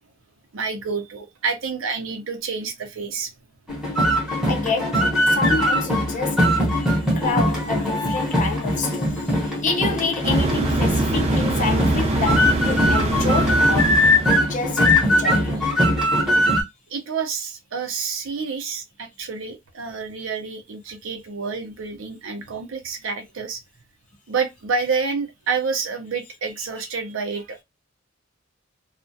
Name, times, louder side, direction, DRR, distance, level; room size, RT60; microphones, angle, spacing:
voice 1, 0.5-3.3 16.9-23.6 24.3-27.6, right 5 dB, 80° right, 0.6 m, -28 dB
sound 1, 3.7-16.6, equal, ahead, 0.8 m, -21 dB
voice 2, 4.5-6.6 7.1-14.1 14.5-15.7, left 4 dB, 40° left, 0.6 m, -28 dB
sound 2, 10.2-14.7, right 2 dB, 35° right, 0.5 m, -23 dB
2.3 x 2.1 x 2.6 m
head